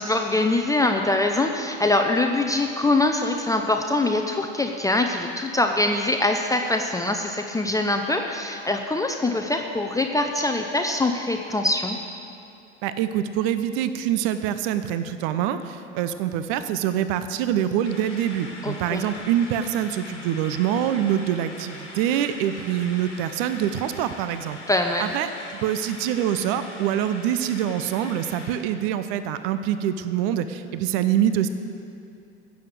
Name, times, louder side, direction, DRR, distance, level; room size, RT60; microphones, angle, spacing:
voice 1, 0.0-12.0 18.6-19.0 24.7-25.1, left 2 dB, 10° left, 3 dB, 0.7 m, -23 dB
voice 2, 12.8-24.6 25.0-31.5, right 10 dB, 55° right, 11 dB, 0.7 m, -25 dB
sound 1, 17.8-28.6, left 2 dB, 90° left, 1.8 m, -42 dB
16.0 x 7.1 x 6.4 m, 2.6 s
figure-of-eight pair, 70°, 35 cm